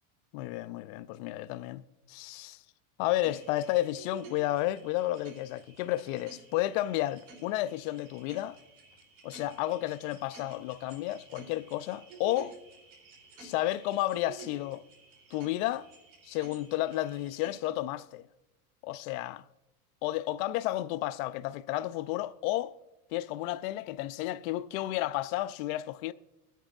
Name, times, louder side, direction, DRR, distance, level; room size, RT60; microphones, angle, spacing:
voice 1, 0.3-1.8 2.1-2.6 3.0-8.6 9.2-12.6 13.4-14.8 15.3-15.9 16.2-18.3 18.8-19.4 20.0-22.7 23.1-26.1, left 15 dB, 65° left, 0.6 m, -32 dB
sound 1, 3.0-17.6, right 4 dB, 70° right, 3.7 m, -52 dB
22.0 x 9.1 x 2.4 m
supercardioid pair, 115°, 46 cm